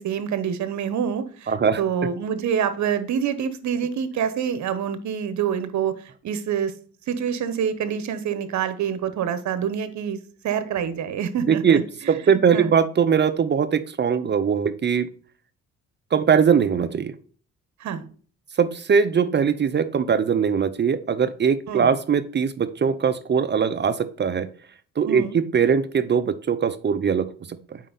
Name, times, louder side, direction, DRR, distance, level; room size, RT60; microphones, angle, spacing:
voice 1, 0.0-6.7 7.1-10.2 10.4-12.7 17.8-18.0 21.7-21.9 25.0-25.4, right 8 dB, 70° right, 12 dB, 1.1 m, -26 dB
voice 2, 1.5-1.8 11.5-11.8 12.1-15.1 16.1-17.1 18.6-24.5 25.0-27.3 27.7-27.8, right 7 dB, 35° right, 13 dB, 0.6 m, -21 dB
7.5 x 5.2 x 4.0 m, 0.43 s
cardioid pair, 90°, 30 cm